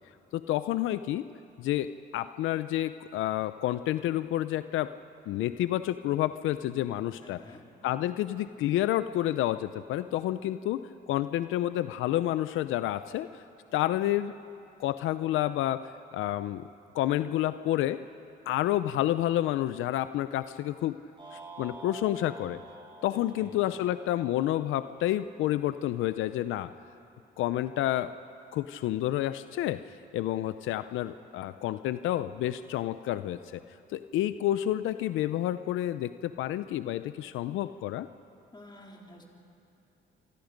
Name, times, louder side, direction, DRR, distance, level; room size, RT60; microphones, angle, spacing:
voice 1, 0.3-1.2 1.6-4.9 5.3-7.4 7.8-10.8 11.1-13.3 13.7-14.3 14.8-16.7 16.9-18.0 18.5-21.0 21.3-22.6 23.0-26.7 27.4-28.1 28.5-29.8 30.1-33.6 33.9-38.1, left 13 dB, 85° left, 12 dB, 0.6 m, -29 dB
voice 2, 7.2-7.6 23.1-23.6 38.5-39.2, left 1 dB, 20° left, -1 dB, 3.9 m, -50 dB
sound 1, 21.2-25.5, right 3 dB, 25° right, 7.6 m, -48 dB
26.5 x 25.0 x 5.2 m, 2.8 s
cardioid pair, 90°, 20 cm